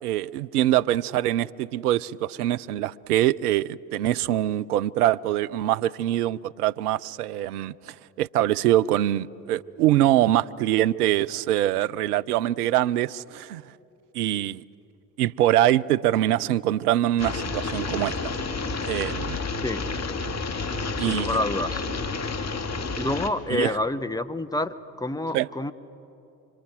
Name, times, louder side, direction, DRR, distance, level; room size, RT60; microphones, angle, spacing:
voice 1, 0.0-13.6 14.1-14.6 15.2-18.2 18.8-19.4 21.0-21.4 23.5-23.8 25.3-25.5, right 13 dB, 75° right, 0.6 m, -24 dB
sound 1, 17.2-23.3, left 3 dB, 35° left, 2.3 m, -30 dB
voice 2, 21.0-21.8 22.9-25.7, left 1 dB, 10° left, 1.3 m, -28 dB
27.5 x 25.5 x 7.7 m
figure-of-eight pair, 50°, 46 cm